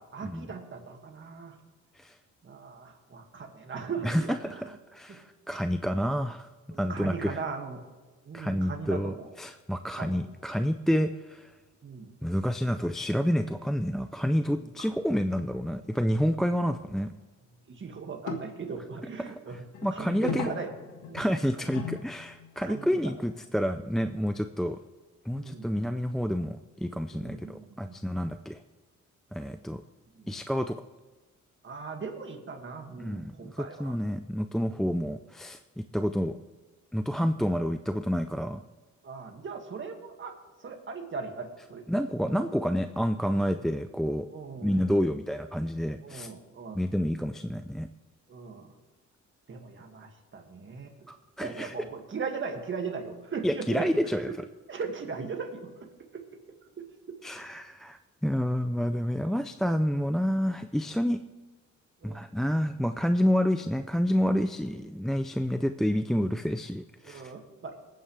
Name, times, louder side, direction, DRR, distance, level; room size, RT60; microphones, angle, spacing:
voice 1, 0.0-1.6 2.4-4.8 5.1-5.2 6.7-7.8 8.2-9.3 9.9-10.2 11.8-12.1 14.4-14.7 17.7-19.6 19.9-20.7 21.1-21.3 21.6-21.7 22.6-23.0 25.3-25.7 27.1-28.0 30.1-30.3 31.6-34.0 34.7-35.0 37.1-37.3 39.0-40.4 40.6-41.8 42.2-42.4 43.5-43.7 44.3-45.1 46.0-46.8 48.3-48.7 49.5-50.9 51.4-53.9 54.3-54.4 54.7-56.2 56.8-57.2 62.0-62.2 65.5-65.6 67.0-67.8, right 5 dB, 40° right, 3 dB, 2.1 m, -39 dB
voice 2, 4.0-4.6 4.9-6.5 6.8-7.4 8.3-11.5 12.2-17.1 19.3-19.4 19.8-20.5 21.1-24.8 25.3-28.6 29.3-29.8 30.3-30.8 33.0-35.6 35.9-36.4 36.9-38.6 41.9-44.3 44.6-46.3 46.7-47.9 51.1-51.7 53.4-54.3 57.2-61.2 62.0-67.3, equal, ahead, 9 dB, 0.4 m, -29 dB
sound 1, 15.0-15.5 15.8-15.9 16.7-16.8 17.1-17.2 18.3-18.4 19.7-22.7 24.7-24.8, left 6 dB, 80° left, 1.7 m, -38 dB
20.5 x 9.2 x 3.4 m, 1.3 s
cardioid pair, 90°, 30 cm